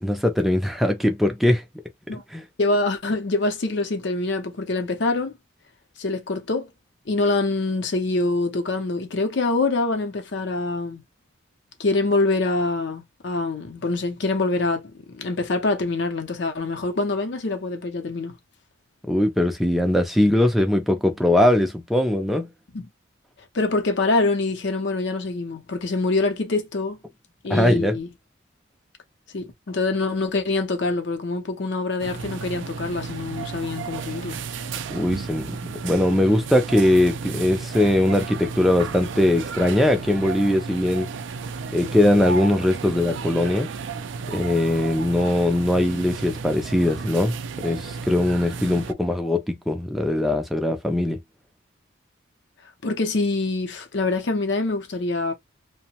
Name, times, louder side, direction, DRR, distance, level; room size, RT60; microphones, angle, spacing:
voice 1, 0.0-1.6 2.3-2.4 19.1-22.5 27.5-28.0 34.9-41.1 41.7-43.7 44.3-47.3 47.6-51.2, left 1 dB, ahead, 0.4 m, -21 dB
voice 2, 2.6-5.3 6.0-6.7 7.1-11.0 11.8-18.4 22.7-22.9 23.5-27.0 27.4-28.1 29.3-34.4 48.6-48.9 52.8-55.3, left 3 dB, 60° left, 0.6 m, -25 dB
sound 1, 32.0-48.9, right 5 dB, 65° right, 0.4 m, -33 dB
2.7 x 2.1 x 2.8 m
head